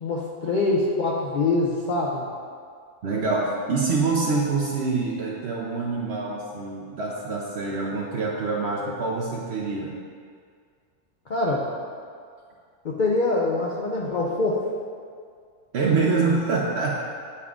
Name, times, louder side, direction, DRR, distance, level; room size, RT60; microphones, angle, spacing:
voice 1, 0.0-2.2 11.3-11.7 12.8-14.6, left 2 dB, 60° left, -4 dB, 0.5 m, -24 dB
voice 2, 3.0-9.9 15.7-17.1, right 4 dB, 55° right, -2 dB, 0.7 m, -25 dB
9.4 x 3.6 x 3.6 m, 2.1 s
omnidirectional pair, 1.7 m